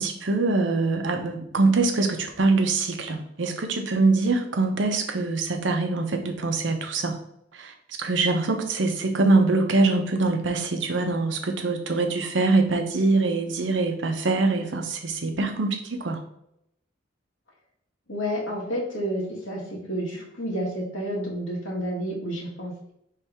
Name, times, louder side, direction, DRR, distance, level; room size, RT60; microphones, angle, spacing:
voice 1, 0.0-7.2 7.5-16.2, right 3 dB, 70° right, 5 dB, 0.7 m, -24 dB
voice 2, 18.1-19.6 19.9-22.9, equal, 85° left, -2 dB, 1.5 m, -30 dB
4.7 x 3.3 x 3.4 m, 0.77 s
head